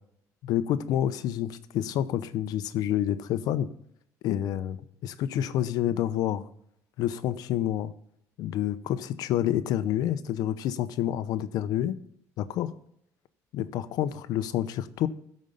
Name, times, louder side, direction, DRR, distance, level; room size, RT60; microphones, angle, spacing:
voice 1, 0.4-3.7 4.2-6.4 7.0-7.9 8.4-12.0 12.4-12.7 13.5-15.1, left 11 dB, 75° left, 13 dB, 0.7 m, -28 dB
13.0 x 5.3 x 5.5 m, 0.72 s
cardioid pair, 110°, 7 cm